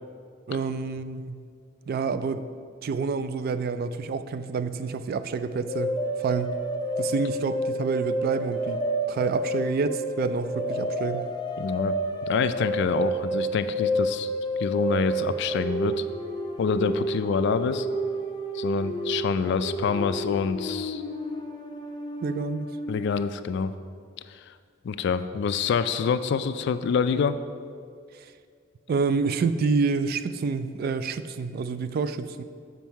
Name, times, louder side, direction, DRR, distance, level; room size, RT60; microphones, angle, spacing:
voice 1, 0.5-1.4 1.9-2.4 2.8-5.9 6.2-6.5 7.0-8.8 9.1-11.3 22.2-22.7 28.9-32.4, right 4 dB, 50° right, 12 dB, 0.3 m, -28 dB
sound 1, 5.7-23.1, right 1 dB, 25° left, 0.6 m, -30 dB
voice 2, 11.6-11.9 12.3-14.3 14.6-16.0 16.6-17.9 18.5-21.0 22.9-23.7 24.8-27.4, left 6 dB, 65° left, 12 dB, 0.3 m, -26 dB
7.3 x 5.2 x 4.6 m, 2.2 s
head